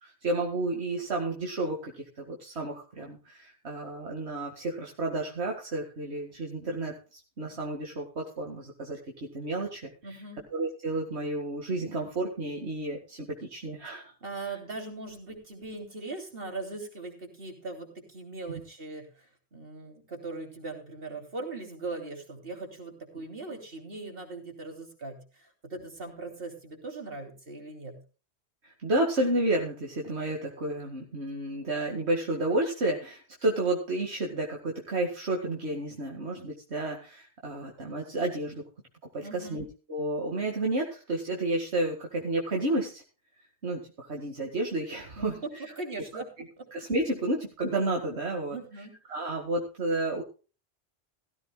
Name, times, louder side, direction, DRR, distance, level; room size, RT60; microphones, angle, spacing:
voice 1, 0.0-9.9 10.5-14.0 18.5-18.6 28.6-38.6 39.1-43.0 43.6-45.6 46.1-46.2 46.7-48.6 49.1-50.2, right 2 dB, 80° right, 0 dB, 2.3 m, -31 dB
voice 2, 10.0-10.4 14.2-28.0 39.2-39.6 45.2-45.5 45.8-46.3 48.5-49.0, right 3 dB, 60° right, 3 dB, 3.5 m, -40 dB
17.0 x 14.5 x 2.3 m, 0.34 s
omnidirectional pair, 1.1 m